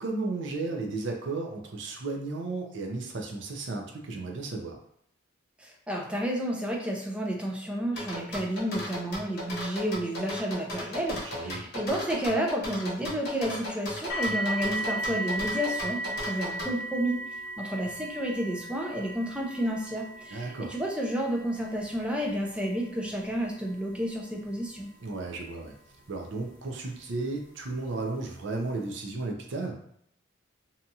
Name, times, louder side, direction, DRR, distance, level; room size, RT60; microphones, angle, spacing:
voice 1, 0.0-4.8 11.3-11.7 20.3-20.7 25.0-25.7 26.1-29.7, right 3 dB, 60° right, 2 dB, 0.5 m, -34 dB
voice 2, 5.6-16.0 16.3-17.2 17.6-24.9, equal, 5° right, -1 dB, 0.4 m, -31 dB
sound 1, 8.0-16.7, left 1 dB, 55° left, 0.9 m, -36 dB
sound 2, 14.1-27.0 27.8-27.9 28.5-28.6, right 1 dB, 75° left, 0.6 m, -37 dB
2.8 x 2.3 x 2.7 m, 0.70 s
head